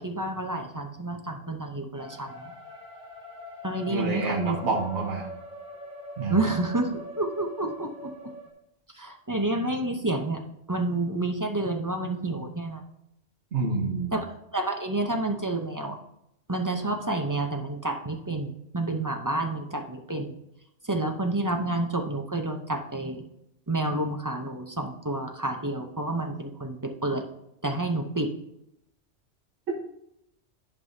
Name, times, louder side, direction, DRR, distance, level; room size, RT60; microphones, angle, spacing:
voice 1, 0.0-2.3 3.6-4.6 6.3-8.1 9.0-10.4 10.7-12.8 14.1-14.2 14.5-16.0 16.5-20.3 20.9-23.2 23.7-27.3 27.6-28.3, right 2 dB, 20° right, 3 dB, 0.6 m, -29 dB
sound 1, 1.9-8.5, equal, 5° right, 2.5 m, -42 dB
voice 2, 3.9-5.3 6.2-6.5 13.5-14.1, right 3 dB, 70° right, -4 dB, 1.4 m, -28 dB
10.5 x 5.5 x 2.7 m, 0.79 s
omnidirectional pair, 1.2 m